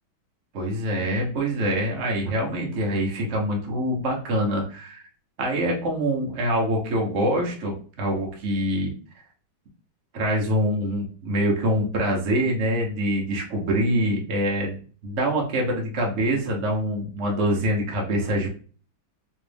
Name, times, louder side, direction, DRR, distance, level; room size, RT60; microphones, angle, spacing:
voice 1, 0.5-5.0 5.4-8.9 10.1-14.8 15.0-18.5, equal, 45° right, -1 dB, 1.0 m, -25 dB
3.2 x 3.1 x 3.3 m, 0.42 s
omnidirectional pair, 2.2 m